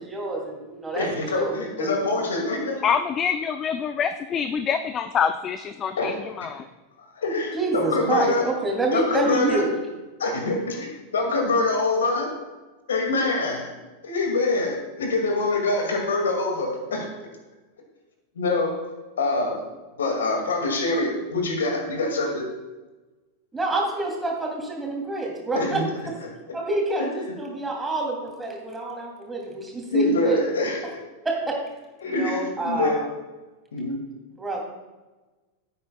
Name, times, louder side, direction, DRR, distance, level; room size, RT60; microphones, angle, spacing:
voice 1, 0.0-1.1 1.3-2.0 7.5-9.7 23.5-26.1 26.5-30.4 31.2-31.6 32.0-33.1 34.3-34.6, right 2 dB, 10° right, -1 dB, 2.7 m, -27 dB
voice 2, 0.9-2.8 6.0-6.2 7.0-8.5 8.9-9.6 10.2-12.3 12.9-13.7 14.0-17.1 18.4-18.8 19.2-19.6 20.0-22.5 25.5-25.8 27.0-27.1 29.9-30.8 32.0-33.0 33.7-34.0, left 2 dB, 65° left, 2 dB, 2.1 m, -25 dB
voice 3, 2.8-6.7, left 7 dB, 25° left, 11 dB, 0.4 m, -26 dB
16.0 x 8.7 x 2.3 m, 1.2 s
figure-of-eight pair, 90°, 0 cm